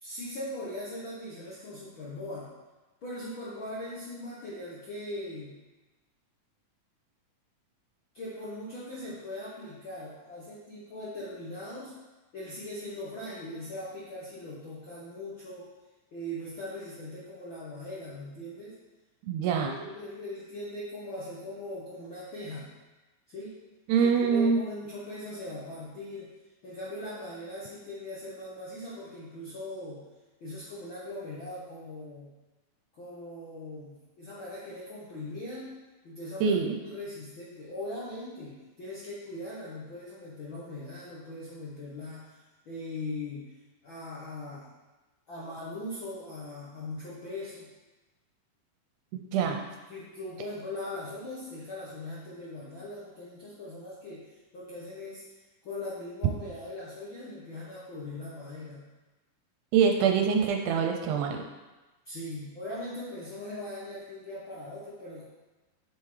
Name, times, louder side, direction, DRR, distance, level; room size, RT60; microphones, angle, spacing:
voice 1, 0.0-2.5 3.0-5.6 8.1-12.0 12.3-15.7 16.1-18.7 19.4-22.8 23.3-23.5 24.2-26.3 26.6-30.0 30.4-32.3 32.9-35.7 36.0-42.3 42.6-43.5 43.8-44.7 45.3-47.7 49.4-49.5 49.9-55.2 55.6-58.8 62.0-65.2, left 1 dB, 65° left, -8 dB, 1.2 m, -40 dB
voice 2, 19.3-19.7 23.9-24.6 36.4-36.7 49.1-49.6 59.7-61.4, right 6 dB, 80° right, 3 dB, 2.0 m, -24 dB
8.3 x 5.7 x 3.2 m, 1.1 s
omnidirectional pair, 3.9 m